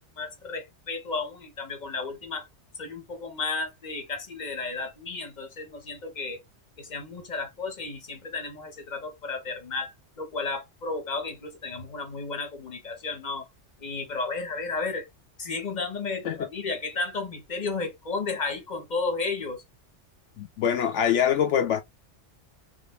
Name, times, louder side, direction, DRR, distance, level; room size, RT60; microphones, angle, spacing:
voice 1, 0.2-2.5 2.8-6.4 6.8-13.5 13.8-15.1 15.4-19.6, left 3 dB, 40° left, 1.3 m, -33 dB
voice 2, 20.4-21.8, left 9 dB, 80° left, 0.9 m, -24 dB
3.4 x 3.4 x 2.2 m
omnidirectional pair, 1.2 m